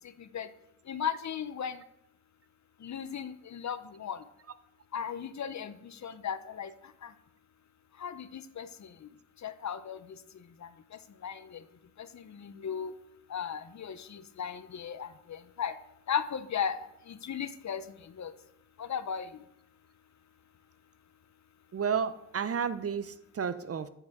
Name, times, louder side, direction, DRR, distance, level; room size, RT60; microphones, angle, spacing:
voice 1, 0.9-1.8 2.8-4.2 4.9-6.7 7.0-7.1 8.0-8.9 9.4-10.0 11.2-11.6 12.1-12.9 13.3-15.7 16.1-16.8 17.1-17.8 18.2-18.3 18.8-19.3, left 7 dB, 65° left, 12 dB, 0.5 m, -36 dB
voice 2, 21.7-23.9, right 7 dB, 50° right, 14 dB, 0.5 m, -32 dB
9.6 x 4.7 x 3.5 m, 0.82 s
wide cardioid pair, 70°, 30 cm